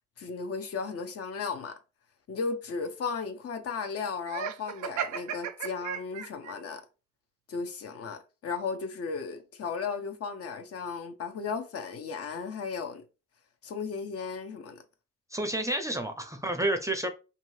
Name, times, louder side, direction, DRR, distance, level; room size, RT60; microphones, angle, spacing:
voice 1, 0.2-1.8 2.3-6.8 7.5-13.0 13.6-14.8, left 5 dB, 50° left, 0.7 m, -35 dB
Laughter, 4.2-6.5, right 8 dB, 75° right, 0.5 m, -35 dB
voice 2, 15.3-17.1, right 1 dB, 10° right, 0.5 m, -30 dB
2.7 x 2.6 x 3.1 m
cardioid pair, 90°, 30 cm